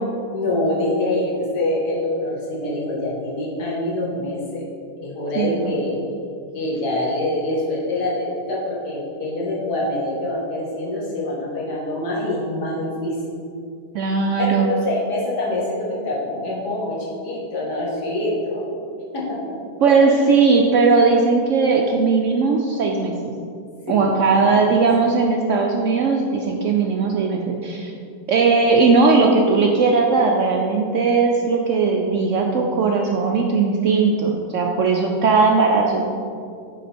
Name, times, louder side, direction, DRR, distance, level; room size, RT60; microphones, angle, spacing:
voice 1, 0.3-4.6 5.0-6.0 6.5-13.1 14.4-18.6 19.1-19.5 20.0-20.3 23.9-24.6, left 1 dB, 80° left, -4 dB, 2.0 m, -25 dB
voice 2, 5.4-5.8 13.9-14.7 19.8-23.1 23.9-27.9 28.3-36.1, right 4 dB, 70° right, 1 dB, 0.7 m, -18 dB
9.1 x 3.9 x 4.2 m, 2.5 s
omnidirectional pair, 1.8 m